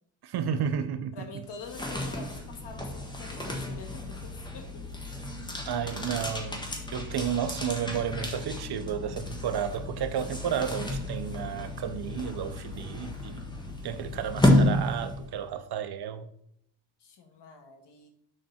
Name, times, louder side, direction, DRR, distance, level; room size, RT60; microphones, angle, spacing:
voice 1, 0.2-1.1 5.7-13.4 13.8-16.3, right 8 dB, 60° right, 0.7 m, -32 dB
voice 2, 1.1-4.8 17.0-18.1, left 4 dB, 65° left, 1.4 m, -45 dB
sound 1, 1.4-15.5, left 1 dB, 10° left, 1.0 m, -31 dB
6.5 x 3.7 x 5.7 m
wide cardioid pair, 180°, 44 cm